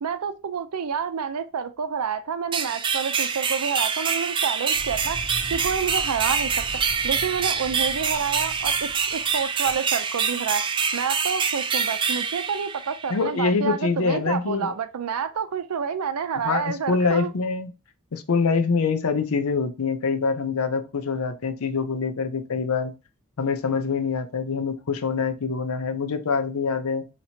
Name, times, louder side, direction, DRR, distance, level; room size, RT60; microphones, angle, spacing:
voice 1, 0.0-5.2 5.5-6.5 7.0-17.3, right 6 dB, 85° right, 0.5 m, -28 dB
sound 1, 2.5-13.2, right 6 dB, 20° right, 0.3 m, -26 dB
sound 2, 4.7-9.7, left 1 dB, 25° left, 0.8 m, -40 dB
voice 2, 13.1-14.7 16.4-17.7 18.1-22.9 23.4-27.1, left 4 dB, 70° left, 0.5 m, -25 dB
2.9 x 2.8 x 4.3 m
head